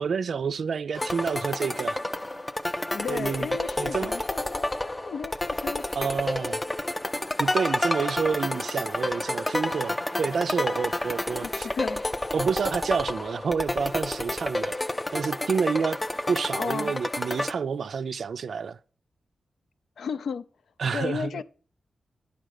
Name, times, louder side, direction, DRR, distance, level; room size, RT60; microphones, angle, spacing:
voice 1, 0.0-2.0 3.1-3.5 3.8-4.1 6.0-6.6 7.4-11.7 12.3-14.8 15.1-16.0 16.3-18.8 20.8-21.4, right 6 dB, 70° right, 0.4 m, -29 dB
sound 1, 0.9-17.5, left 1 dB, 20° left, 0.5 m, -30 dB
voice 2, 2.9-6.3 11.4-12.0 16.6-16.9 20.0-20.5 20.9-21.4, left 6 dB, 80° left, 0.5 m, -34 dB
9.6 x 5.0 x 6.5 m
cardioid pair, 85°, 0 cm